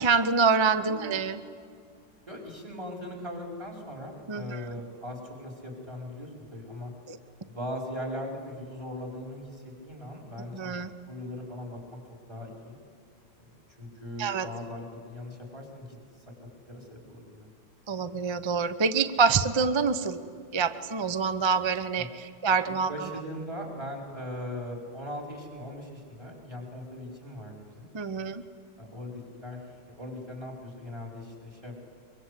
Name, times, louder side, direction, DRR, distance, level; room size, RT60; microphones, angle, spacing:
voice 1, 0.0-1.4 4.3-4.7 7.1-7.2 10.5-10.9 14.2-14.5 17.9-20.2 20.5-23.1 27.9-28.4, right 5 dB, 35° right, 12 dB, 0.4 m, -26 dB
voice 2, 0.8-1.2 2.3-6.9 7.4-10.8 11.1-12.0 12.3-12.8 13.4-16.0 16.7-17.5 21.9-22.1 22.7-27.9 28.8-29.6 29.9-31.8, left 1 dB, 15° right, 1 dB, 4.7 m, -39 dB
23.5 x 23.5 x 8.3 m, 2.3 s
omnidirectional pair, 1.9 m